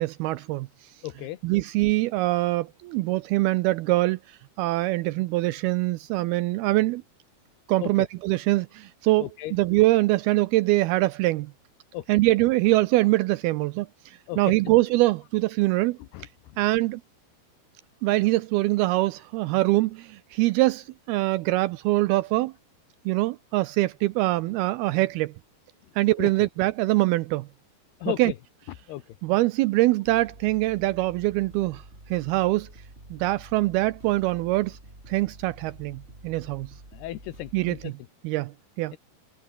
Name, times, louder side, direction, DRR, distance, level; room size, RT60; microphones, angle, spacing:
voice 1, 0.0-0.9 1.4-7.0 7.7-11.5 12.1-16.0 16.6-17.0 18.0-22.5 23.1-25.3 26.0-27.5 28.2-28.3 29.2-32.7 33.1-34.8 35.1-36.7 37.5-37.9 38.2-39.0, right 19 dB, 80° right, 2.3 m, -24 dB
voice 2, 1.0-1.4 7.8-7.9 9.2-9.5 11.9-12.0 14.3-14.5 16.1-16.3 26.2-26.3 28.0-28.3 28.9-29.0 36.9-37.9, left 15 dB, 75° left, 3.2 m, -34 dB
sound 1, 30.0-37.9, right 1 dB, 15° right, 6.4 m, -48 dB
omnidirectional pair, 4.9 m